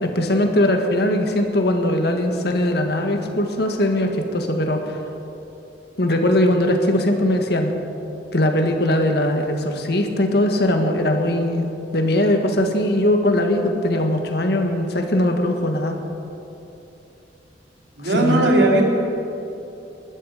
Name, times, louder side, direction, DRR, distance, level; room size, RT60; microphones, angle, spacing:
voice 1, 0.0-5.0 6.0-7.7 8.3-11.7 11.9-16.0 18.0-18.5, left 1 dB, 65° left, 4 dB, 1.7 m, -20 dB
voice 2, 18.0-19.0, right 1 dB, 85° right, -1 dB, 2.9 m, -17 dB
20.5 x 13.0 x 5.1 m, 3.0 s
head